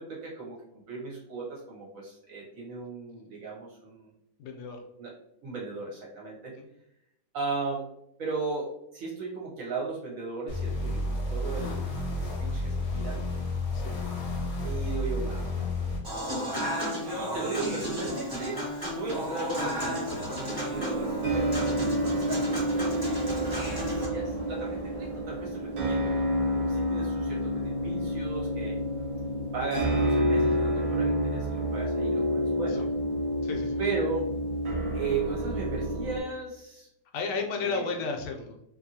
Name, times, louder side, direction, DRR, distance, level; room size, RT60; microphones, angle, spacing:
voice 1, 0.0-4.1 5.0-5.1 5.4-6.6 7.3-7.9 8.2-13.2 14.6-15.8 17.0-21.6 22.0-26.3 26.6-28.8 29.5-32.9 33.8-34.3 34.9-36.9 37.6-38.0, right 4 dB, 60° right, -4 dB, 1.1 m, -36 dB
voice 2, 4.4-4.8 6.6-6.7 13.7-14.0 32.7-32.9 33.4-33.8 37.1-38.5, left 4 dB, 75° left, 3 dB, 1.1 m, -33 dB
sound 1, 10.5-16.0, left 2 dB, 50° left, 0.9 m, -31 dB
Human voice / Acoustic guitar / Piano, 16.0-24.1, equal, 15° right, 0.9 m, -33 dB
sound 2, 20.7-36.2, equal, 80° right, 0.4 m, -29 dB
2.8 x 2.6 x 2.7 m, 0.80 s
omnidirectional pair, 1.9 m